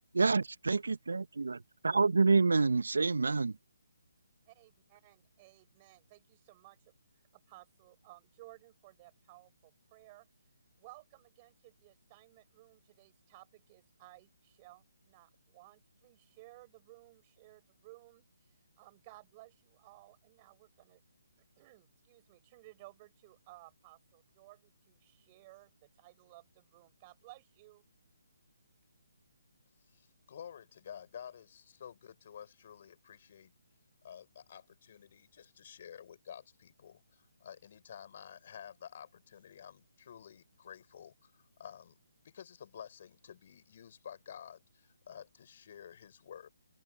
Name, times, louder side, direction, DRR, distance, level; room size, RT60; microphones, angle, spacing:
voice 1, 0.1-1.6 1.8-3.5, right 4 dB, 70° right, 1.1 m, -27 dB
voice 2, 5.0-6.9 7.3-10.3 10.8-18.2 18.8-21.0 21.6-27.8, right 20 dB, 25° right, 6.3 m, -58 dB
voice 3, 30.0-33.5 34.0-41.9 42.2-46.5, left 8 dB, 45° left, 6.4 m, -51 dB
open air
figure-of-eight pair, 145°, 0 cm